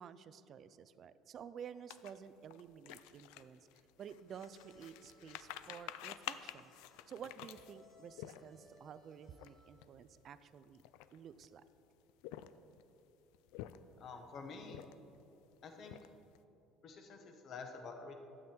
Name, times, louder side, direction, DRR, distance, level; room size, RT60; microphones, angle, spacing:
voice 1, 0.0-3.7 4.0-6.7 7.1-10.8 11.1-11.6, right 7 dB, 35° right, 14 dB, 0.3 m, -52 dB
sound 1, 1.9-8.8 9.3-9.5 9.7-10.0 10.6-11.5 12.1-12.8 13.3-14.1 14.6-15.2 15.6-16.4, left 14 dB, 85° left, 0.3 m, -50 dB
sound 2, 4.1-10.0, equal, 5° left, 1.6 m, -67 dB
voice 2, 14.0-14.8 15.6-15.9 16.8-18.2, left 4 dB, 35° left, 4 dB, 1.0 m, -49 dB
12.0 x 7.7 x 4.4 m, 2.8 s
cardioid pair, 170°, 0 cm